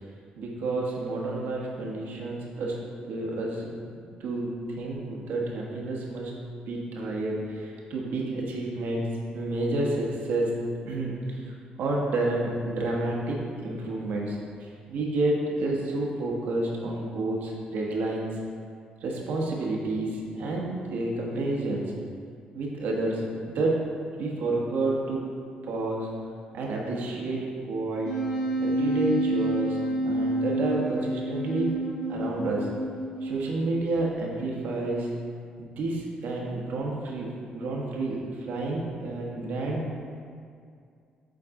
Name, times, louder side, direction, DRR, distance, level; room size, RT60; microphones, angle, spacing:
voice 1, 0.4-6.3 6.7-10.5 10.8-18.4 19.0-21.9 22.5-23.8 24.2-25.3 25.6-26.1 26.5-28.1 28.6-29.8 30.0-31.8 32.1-32.7 33.2-35.1 35.6-39.8, right 2 dB, 75° right, -2 dB, 1.2 m, -30 dB
Wind instrument woodwind instrument, 28.0-33.7, right 1 dB, 70° left, 1.4 m, -29 dB
7.6 x 4.0 x 3.7 m, 2.3 s
cardioid pair, 80°, 3 cm